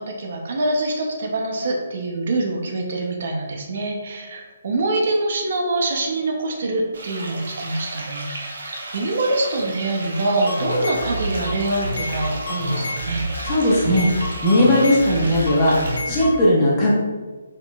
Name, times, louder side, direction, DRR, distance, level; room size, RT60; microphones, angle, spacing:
voice 1, 0.0-13.3, right 2 dB, 45° right, 1 dB, 0.6 m, -25 dB
sound 1, 6.9-16.0, right 2 dB, 70° right, 0.9 m, -34 dB
sound 2, 10.5-16.4, left 1 dB, 70° left, 0.9 m, -29 dB
voice 2, 13.4-14.1 14.4-15.8 16.1-16.9, left 1 dB, 15° left, -5 dB, 0.7 m, -17 dB
4.3 x 3.7 x 2.3 m, 1.3 s
hypercardioid pair, 175°, 0 cm